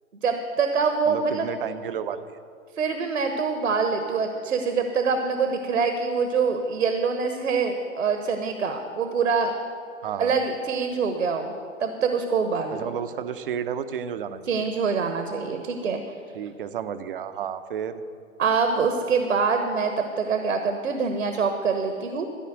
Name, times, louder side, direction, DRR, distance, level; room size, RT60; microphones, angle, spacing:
voice 1, 0.2-1.5 2.8-9.5 10.2-11.5 11.8-12.9 14.5-16.0 18.4-22.3, right 5 dB, 70° right, 6 dB, 1.2 m, -25 dB
voice 2, 1.1-2.2 10.0-10.4 12.7-14.7 16.3-18.0, right 8 dB, 45° right, 11 dB, 0.7 m, -32 dB
13.5 x 5.7 x 9.1 m, 2.3 s
figure-of-eight pair, 125°, 40 cm